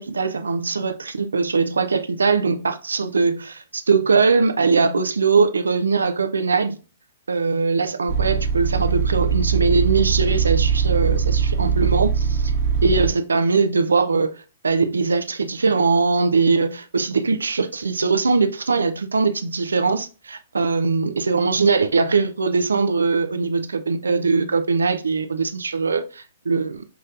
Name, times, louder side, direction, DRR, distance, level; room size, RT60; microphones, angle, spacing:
voice 1, 0.0-6.8 7.3-12.5 12.8-26.8, right 4 dB, 85° right, 0.4 m, -21 dB
sound 1, 8.1-13.1, right 7 dB, 50° right, 1.0 m, -21 dB
5.8 x 3.1 x 2.5 m
hypercardioid pair, 120°, 0 cm